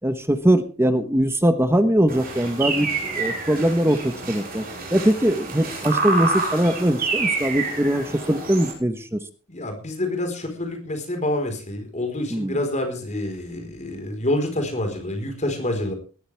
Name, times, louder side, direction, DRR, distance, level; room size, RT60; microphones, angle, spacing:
voice 1, 0.0-4.7 4.9-9.2 12.3-12.6, right 1 dB, 10° right, 9 dB, 1.1 m, -21 dB
sound 1, 2.1-8.7, right 4 dB, 45° right, 6.9 m, -28 dB
voice 2, 9.5-15.9, left 1 dB, 35° left, 4 dB, 4.5 m, -27 dB
19.0 x 14.0 x 3.5 m, 0.37 s
head